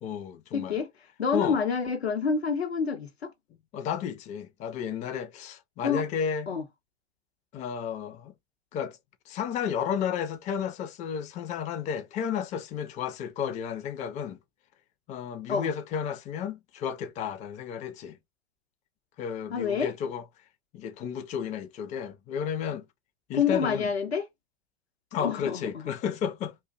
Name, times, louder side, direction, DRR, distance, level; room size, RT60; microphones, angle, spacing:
voice 1, 0.0-0.8 1.3-1.6 3.7-6.5 7.5-8.3 8.7-9.0 9.3-14.4 15.1-18.2 19.2-20.2 20.7-22.9 23.3-23.9 25.1-26.6, left 8 dB, 25° left, 0.4 m, -32 dB
voice 2, 0.5-0.9 1.2-3.3 5.8-6.0 6.5-6.6 15.5-15.7 19.5-19.9 23.3-24.2 25.2-25.9, left 6 dB, 90° left, 0.7 m, -28 dB
2.5 x 2.2 x 2.4 m
hypercardioid pair, 95°, 31 cm